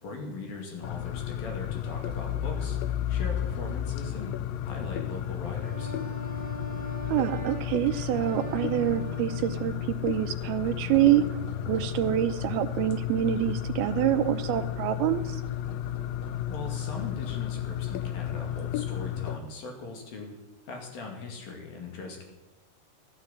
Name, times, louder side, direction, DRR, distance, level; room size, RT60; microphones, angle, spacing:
voice 1, 0.0-2.8 3.1-4.3 4.6-5.9 16.5-20.3 20.7-22.2, left 3 dB, 65° left, 2 dB, 4.1 m, -40 dB
sound 1, 0.8-19.4, left 10 dB, 80° left, 2.1 m, -33 dB
Wind instrument woodwind instrument, 5.6-9.9, right 3 dB, ahead, 3.6 m, -41 dB
voice 2, 7.0-15.4, right 12 dB, 80° right, 10 dB, 2.4 m, -26 dB
Hammer, 9.0-18.7 20.0-20.1, left 1 dB, 30° left, 5.4 m, -49 dB
14.0 x 9.8 x 8.0 m, 1.0 s
omnidirectional pair, 4.7 m